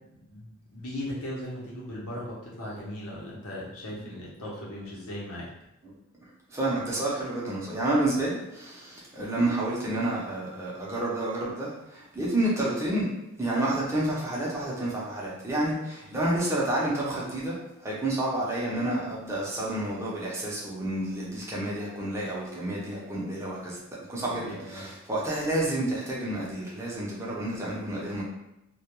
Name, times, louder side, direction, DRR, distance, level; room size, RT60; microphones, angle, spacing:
voice 1, 0.1-5.5 24.3-24.8, left 1 dB, 85° left, -5 dB, 0.8 m, -38 dB
voice 2, 6.2-13.1 13.4-17.6 17.8-23.8 24.1-28.2, right 1 dB, 15° right, -6 dB, 0.5 m, -29 dB
2.2 x 2.2 x 2.9 m, 0.88 s
head